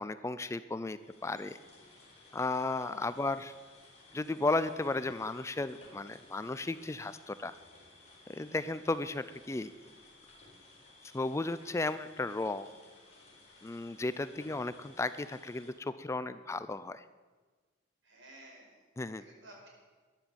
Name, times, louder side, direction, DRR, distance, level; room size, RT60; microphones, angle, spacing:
voice 1, 0.0-1.6 2.3-3.5 4.1-7.5 8.3-9.7 11.1-12.7 13.6-17.0 19.0-19.2, left 2 dB, 15° left, 14 dB, 0.4 m, -34 dB
sound 1, 0.9-15.7, left 2 dB, 35° left, 4.6 m, -58 dB
voice 2, 18.0-18.8 19.2-19.7, right 1 dB, 75° right, -1 dB, 5.0 m, -55 dB
13.5 x 11.0 x 7.0 m, 1.4 s
head